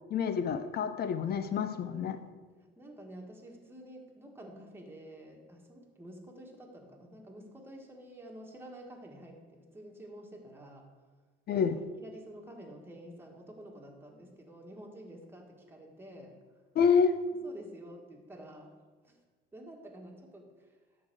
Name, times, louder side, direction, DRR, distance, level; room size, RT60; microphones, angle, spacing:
voice 1, 0.1-2.1 11.5-11.8 16.8-17.1, left 6 dB, 50° left, 10 dB, 0.6 m, -27 dB
voice 2, 1.9-11.0 11.5-11.6 12.0-16.4 17.3-18.8 19.0-19.2 19.5-20.7, right 1 dB, 10° right, 0 dB, 1.6 m, -49 dB
11.0 x 4.0 x 7.7 m, 1.4 s
cardioid pair, 125°, 21 cm